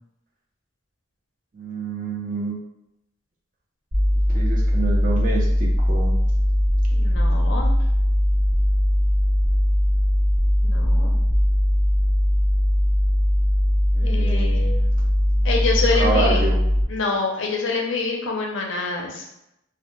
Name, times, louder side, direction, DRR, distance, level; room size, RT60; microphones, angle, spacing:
voice 1, 1.5-2.6 4.3-5.5 5.9-6.2 13.9-15.5 16.0-16.6, right 3 dB, 40° right, -3 dB, 0.5 m, -28 dB
sound 1, 3.9-16.8, equal, 85° right, 1.0 m, -20 dB
voice 2, 6.9-7.7 10.6-11.2 14.0-14.7 15.4-16.4 16.9-19.3, left 3 dB, 70° left, 1 dB, 0.5 m, -26 dB
2.1 x 2.0 x 2.9 m, 0.84 s
head